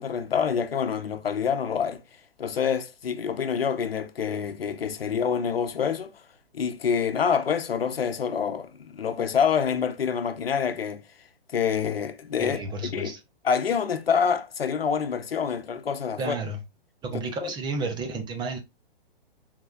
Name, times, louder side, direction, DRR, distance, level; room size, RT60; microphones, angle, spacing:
voice 1, 0.0-2.0 2.4-6.1 6.5-11.0 11.5-12.6 12.9-13.1 13.4-16.4 17.1-17.5, left 7 dB, 75° left, 0.8 m, -26 dB
voice 2, 12.4-13.2 16.2-16.6 17.0-18.6, right 3 dB, 15° right, 0.7 m, -32 dB
4.8 x 3.7 x 2.4 m
figure-of-eight pair, 125°, 30 cm